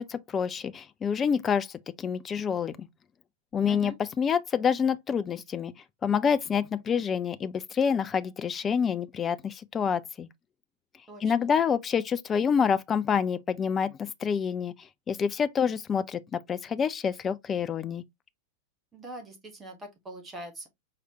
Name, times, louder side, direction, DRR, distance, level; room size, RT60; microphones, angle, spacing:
voice 1, 0.0-2.9 3.5-5.7 6.0-10.3 11.2-14.7 15.1-18.0, left 7 dB, 20° left, 0.3 m, -27 dB
voice 2, 11.1-11.5 18.9-20.7, right 2 dB, 15° right, 1.3 m, -43 dB
4.8 x 3.2 x 2.8 m
figure-of-eight pair, 90°, 0 cm